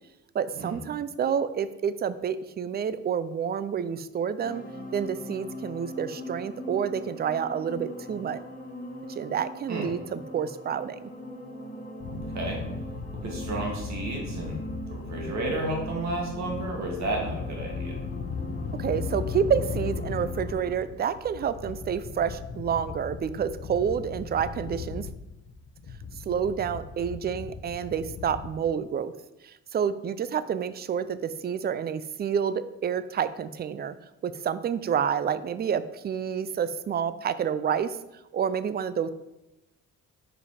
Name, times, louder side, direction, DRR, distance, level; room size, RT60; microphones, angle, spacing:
voice 1, 0.3-4.6 4.9-8.4 9.2-11.1 18.8-25.1 26.3-29.1 29.4-33.9 34.2-38.0 38.3-39.1, right 7 dB, 35° right, 14 dB, 0.4 m, -29 dB
sound 1, 4.4-20.8, equal, 30° left, 1.2 m, -41 dB
sound 2, 12.0-28.5, left 5 dB, 50° left, 0.9 m, -37 dB
voice 2, 12.2-12.6 13.2-18.0, right 2 dB, 65° right, 0 dB, 2.1 m, -32 dB
5.1 x 5.0 x 4.9 m, 0.96 s
cardioid pair, 90°, 30 cm